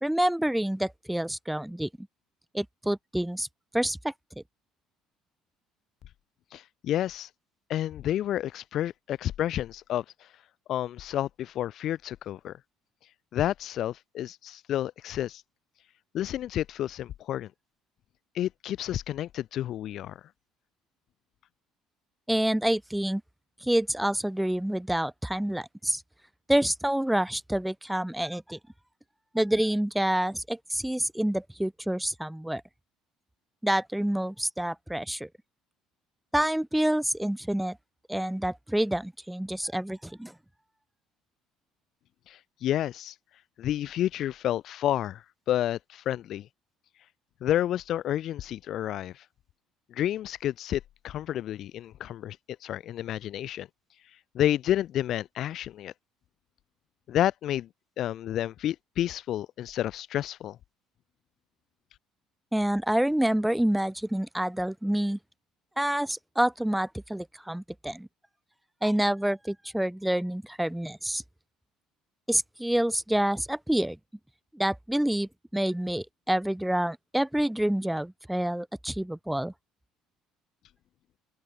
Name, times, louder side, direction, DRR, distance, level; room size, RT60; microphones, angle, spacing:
voice 1, 0.0-2.1 2.5-3.5 3.7-4.4 22.3-23.2 23.6-26.0 26.5-28.6 29.3-32.6 33.6-35.3 36.3-37.8 38.1-40.3 62.5-65.2 65.8-68.1 68.8-71.2 72.3-74.0 74.5-79.5, right 1 dB, 5° right, 0.6 m, -28 dB
voice 2, 6.5-7.3 7.7-10.0 10.7-12.6 13.3-15.4 16.1-17.5 18.3-20.1 42.3-43.1 43.6-46.5 47.4-49.2 49.9-52.4 52.6-53.7 54.3-55.9 57.1-57.7 58.0-60.6, left 12 dB, 60° left, 0.4 m, -30 dB
open air
supercardioid pair, 80°, 0 cm